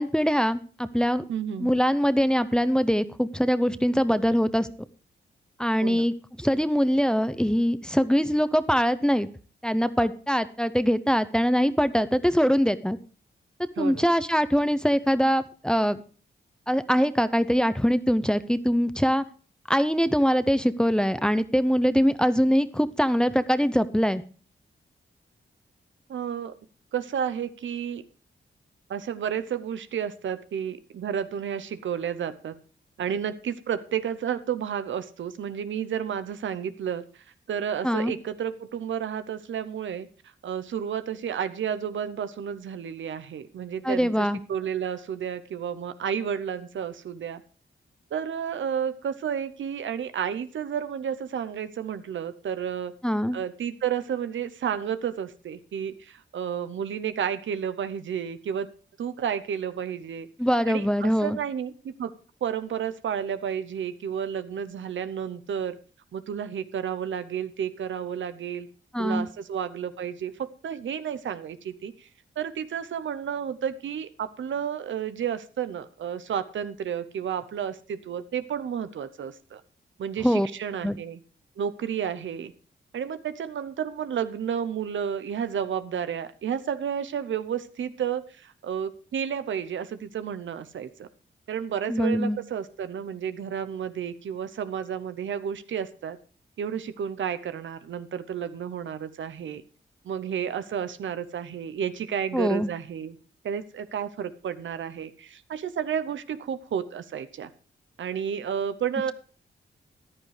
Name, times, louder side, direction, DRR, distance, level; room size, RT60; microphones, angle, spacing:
voice 1, 0.0-1.2 1.6-4.7 5.6-9.3 9.6-13.0 13.8-16.0 16.7-19.2 19.7-24.2 37.8-38.1 43.8-44.4 53.0-53.4 60.4-61.4 68.9-69.3 80.2-80.5 80.8-81.0 91.9-92.4 102.3-102.7, equal, 5° left, 13 dB, 0.6 m, -23 dB
voice 2, 1.3-1.7 5.8-6.0 13.8-14.0 26.1-26.5 26.9-28.0 28.9-32.6 33.0-40.1 40.4-47.4 48.1-52.9 53.3-58.7 59.0-60.3 60.7-62.1 62.4-65.8 66.1-68.7 69.0-72.1 72.4-79.6 80.0-81.2 81.6-82.5 82.9-91.1 91.5-96.2 96.6-99.6 100.0-103.2 103.4-107.5 108.0-109.1, right 8 dB, 80° right, 12 dB, 0.7 m, -31 dB
14.0 x 10.5 x 3.3 m, 0.40 s
cardioid pair, 75°, 19 cm